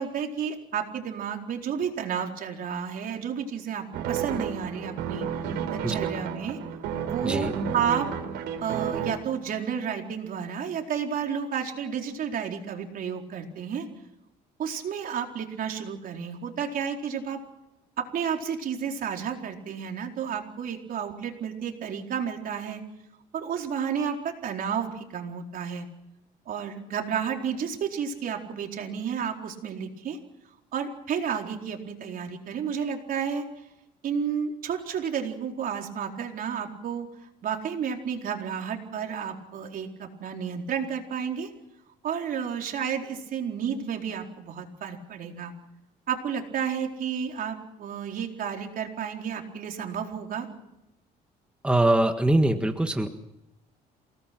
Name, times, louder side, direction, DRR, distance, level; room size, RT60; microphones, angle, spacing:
voice 1, 0.0-5.3 5.7-6.6 7.1-8.1 8.6-13.9 14.6-17.4 18.0-22.8 23.3-25.9 26.5-30.2 30.7-33.4 34.0-37.1 37.4-41.5 42.0-45.5 46.1-50.5, right 7 dB, 55° right, 2 dB, 4.3 m, -31 dB
sound 1, 3.9-9.1, right 7 dB, 90° right, 3.6 m, -31 dB
voice 2, 5.8-6.1 7.2-7.5 51.6-53.1, right 1 dB, 5° right, 5 dB, 1.6 m, -23 dB
28.5 x 18.5 x 6.1 m, 0.87 s
cardioid pair, 110°, 17 cm